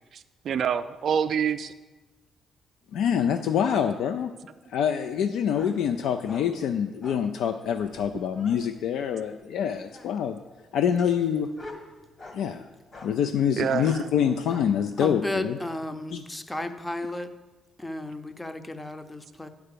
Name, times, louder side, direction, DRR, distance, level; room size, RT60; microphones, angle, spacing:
voice 1, 0.1-1.7 13.6-14.1, right 7 dB, 60° right, 9 dB, 0.3 m, -27 dB
voice 2, 2.9-4.3 4.7-10.4 10.7-11.5 12.3-12.6 13.0-15.6 16.1-16.2, left 8 dB, 80° left, 7 dB, 0.4 m, -26 dB
sound 1, 5.5-5.8 6.2-6.5 7.0-7.3 7.8-8.6 9.6-10.2 10.9-12.4 12.9-13.1 13.7-13.9 14.5-14.7, left 2 dB, 40° left, 1.4 m, -45 dB
voice 3, 15.0-17.3 17.8-19.5, left 1 dB, 15° left, 9 dB, 0.6 m, -34 dB
8.9 x 4.8 x 6.7 m, 1.2 s
cardioid pair, 90°, 0 cm